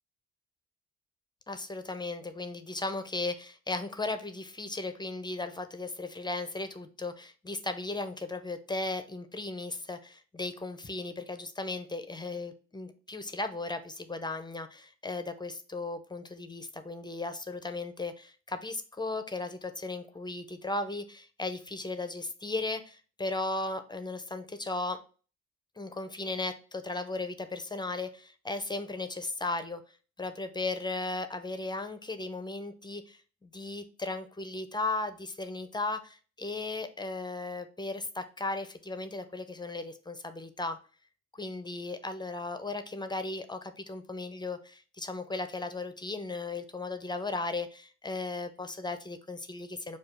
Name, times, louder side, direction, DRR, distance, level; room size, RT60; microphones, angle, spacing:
voice 1, 1.5-25.0 25.8-29.8 30.2-40.8 41.3-50.0, left 2 dB, 15° left, 9 dB, 0.5 m, -36 dB
4.8 x 2.4 x 4.4 m, 0.38 s
cardioid pair, 90°, 30 cm